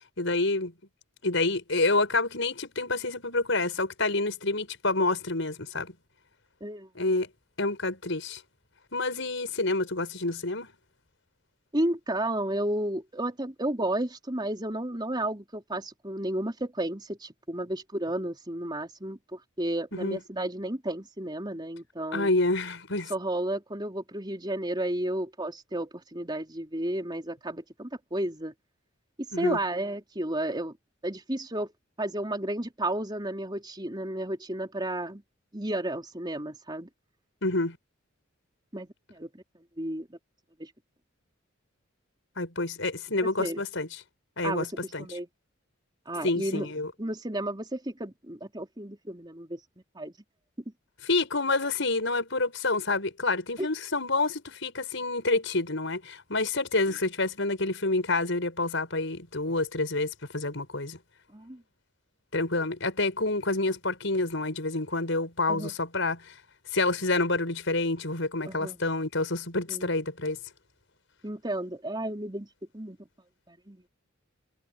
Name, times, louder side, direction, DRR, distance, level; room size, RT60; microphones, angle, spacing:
voice 1, 0.2-0.7 1.2-5.9 6.9-7.3 7.6-8.4 8.9-10.7 19.9-20.2 22.1-23.1 29.3-29.6 37.4-37.8 42.4-43.9 44.4-45.0 46.2-46.9 51.0-61.0 62.3-66.2 66.7-70.4, left 2 dB, 65° left, 6.7 m, -28 dB
voice 2, 11.7-22.3 23.1-28.5 29.4-30.8 31.0-31.7 32.0-35.2 35.5-36.9 38.7-39.4 39.8-40.1 40.6-40.7 43.4-43.6 44.4-45.3 46.1-46.7 47.0-49.6 49.9-50.1 53.6-53.7 61.3-61.6 65.5-65.7 68.4-68.8 69.7-69.9 71.2-72.5 72.7-73.0 73.5-73.8, right 1 dB, 20° right, 4.1 m, -32 dB
head